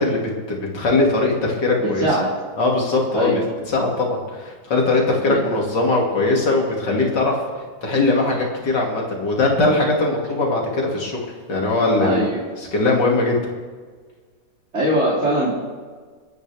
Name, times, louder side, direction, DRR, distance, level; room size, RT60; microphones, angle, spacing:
voice 1, 0.0-2.1 2.6-3.3 3.7-7.4 7.8-11.2 11.5-12.2 12.6-13.4, left 2 dB, 80° left, -1 dB, 3.2 m, -20 dB
voice 2, 2.0-2.3 3.1-3.4 5.2-5.4 12.0-12.4 14.7-15.5, right 1 dB, 40° right, -8 dB, 3.2 m, -20 dB
29.5 x 9.9 x 3.5 m, 1.5 s
omnidirectional pair, 1.9 m